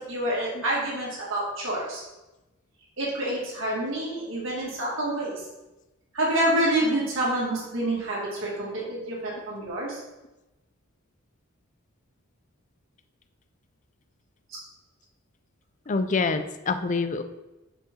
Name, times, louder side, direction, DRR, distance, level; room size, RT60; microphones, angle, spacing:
voice 1, 0.0-2.0 3.0-5.4 6.1-10.0, right 1 dB, 65° right, -5 dB, 2.3 m, -27 dB
voice 2, 15.9-17.2, left 4 dB, 35° left, 9 dB, 0.5 m, -26 dB
5.6 x 4.8 x 5.6 m, 1.0 s
head